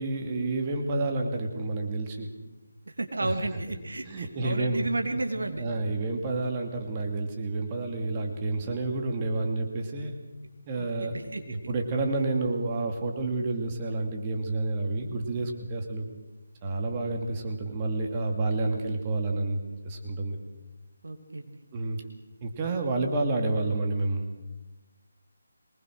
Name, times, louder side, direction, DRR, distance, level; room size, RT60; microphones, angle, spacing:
voice 1, 0.0-2.3 3.2-3.3 4.0-4.9 5.4-10.1 10.7-16.1 16.6-20.4 21.7-22.0 22.4-24.2, right 2 dB, 25° right, 3 dB, 2.5 m, -29 dB
voice 2, 2.9-5.6 10.7-11.7 21.0-21.6, right 2 dB, 75° right, 5 dB, 2.8 m, -33 dB
23.5 x 20.5 x 6.4 m, 1.1 s
figure-of-eight pair, 155°, 0 cm